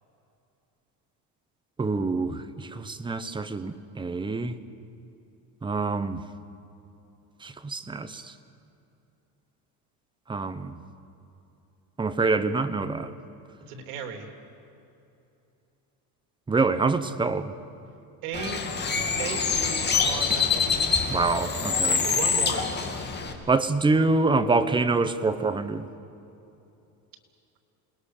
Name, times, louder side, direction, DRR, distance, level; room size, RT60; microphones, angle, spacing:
voice 1, 1.8-4.6 5.6-6.2 7.4-8.3 10.3-10.8 12.0-13.1 16.5-17.5 21.1-22.0 23.5-25.9, right 3 dB, 10° right, 10 dB, 0.9 m, -26 dB
voice 2, 13.7-14.3 18.2-18.6 19.2-20.8 21.8-22.8, right 6 dB, 90° right, 5 dB, 3.4 m, -36 dB
Bird, 18.3-23.3, left 5 dB, 25° left, 2.4 m, -25 dB
28.5 x 20.5 x 6.6 m, 2.8 s
cardioid pair, 145°, 43 cm